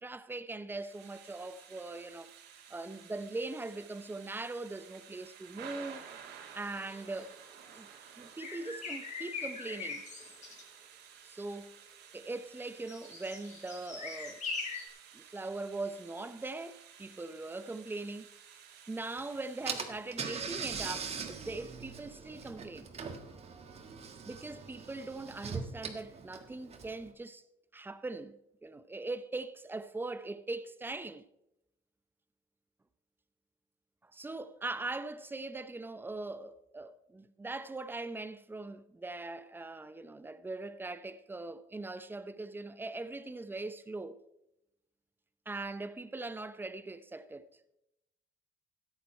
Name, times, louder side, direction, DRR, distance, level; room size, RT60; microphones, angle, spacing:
voice 1, 0.0-2.3 2.7-6.1 6.5-7.3 7.7-7.9 8.2-10.1 11.2-11.7 12.1-14.4 15.1-18.3 18.9-22.9 24.2-27.4 27.7-31.3 34.0-44.2 45.5-47.5, right 2 dB, 10° right, 0.6 m, -41 dB
Thunder / Rain, 0.7-20.2, right 8 dB, 85° right, 2.1 m, -54 dB
sound 1, 6.9-7.2 8.4-10.6 12.8-14.9, left 4 dB, 45° left, 3.0 m, -41 dB
Car / Engine, 19.2-19.3 19.6-27.1, right 5 dB, 40° right, 1.6 m, -41 dB
13.5 x 9.7 x 4.4 m
cardioid pair, 110°, 17 cm